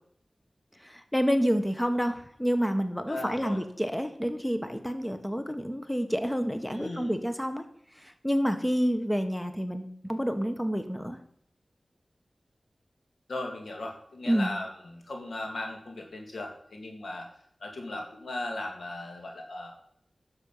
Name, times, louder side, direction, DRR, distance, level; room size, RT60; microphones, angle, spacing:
voice 1, 0.8-7.6 8.0-11.2 14.3-14.5, equal, 10° left, 8 dB, 1.2 m, -28 dB
voice 2, 3.1-3.6 6.7-7.2 13.3-17.3 17.6-19.7, left 2 dB, 85° left, 1 dB, 2.2 m, -37 dB
10.5 x 7.1 x 5.6 m, 0.68 s
cardioid pair, 45°, 0 cm